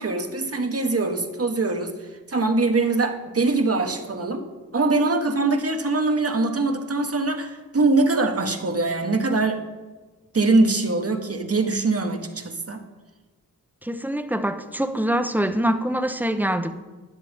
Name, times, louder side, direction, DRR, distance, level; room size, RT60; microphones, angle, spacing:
voice 1, 0.0-4.4 4.7-9.6 10.3-12.8, right 3 dB, 40° right, 1.4 m, -23 dB
voice 2, 13.8-16.7, right 1 dB, 5° right, 0.9 m, -24 dB
12.0 x 10.0 x 3.6 m
cardioid pair, 45°, 35 cm